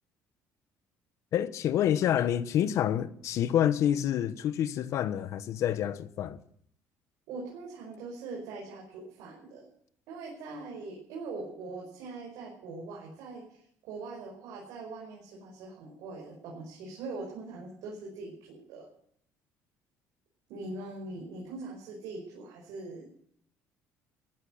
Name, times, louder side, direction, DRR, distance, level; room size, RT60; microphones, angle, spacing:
voice 1, 1.3-6.4, left 10 dB, 60° left, 1.1 m, -28 dB
voice 2, 7.3-9.7 10.1-18.9 20.5-23.1, right 3 dB, 85° right, 5.5 m, -42 dB
15.5 x 10.5 x 7.9 m
cardioid pair, 145°, 6 cm